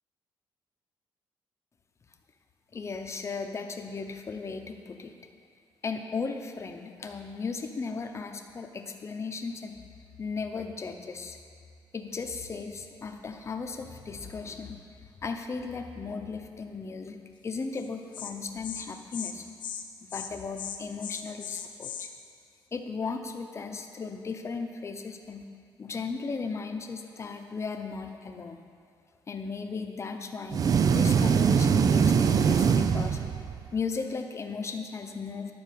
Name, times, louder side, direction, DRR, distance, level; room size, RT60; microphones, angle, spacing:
voice 1, 2.7-5.1 5.8-9.8 10.2-11.4 11.9-14.8 15.2-19.4 20.1-22.1 22.7-25.5 25.8-28.6 29.3-33.2 33.7-35.5, left 4 dB, 35° left, 5 dB, 0.8 m, -36 dB
Insect, 17.8-17.9 18.1-18.3 18.6-18.8 19.1-19.3 19.6-19.8 20.1-20.3 20.6-22.1, left 9 dB, 75° left, 0.7 m, -37 dB
sound 1, 30.5-33.7, right 6 dB, 45° right, 0.5 m, -23 dB
11.0 x 4.7 x 6.7 m, 2.4 s
cardioid pair, 100°, 8 cm